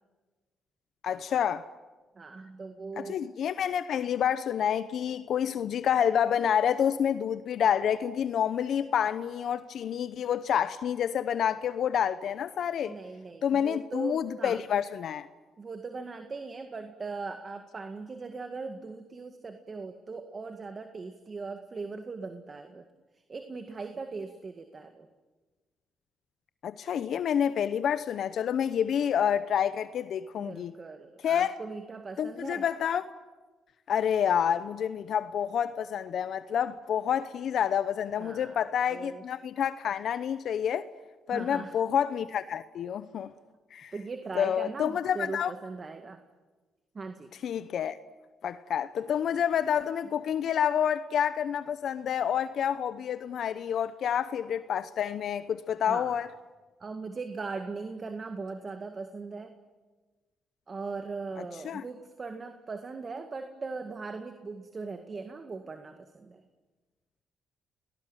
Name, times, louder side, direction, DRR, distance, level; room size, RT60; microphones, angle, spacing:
voice 1, 1.0-1.6 3.0-13.0 13.4-15.3 26.6-30.7 31.2-31.5 32.2-33.1 33.9-40.9 41.3-43.3 43.7-43.9 44.3-45.5 47.4-48.0 48.4-56.3 61.6-61.8, left 8 dB, 65° left, 0.8 m, -28 dB
voice 2, 2.2-3.2 12.9-14.6 15.6-22.9 23.3-25.1 30.4-32.6 38.2-38.6 38.9-39.2 41.3-41.8 43.9-46.2 46.9-47.3 55.9-56.2 56.8-59.6 60.7-66.4, right 4 dB, 35° right, 1.9 m, -39 dB
29.5 x 19.0 x 9.2 m
cardioid pair, 90°, 0 cm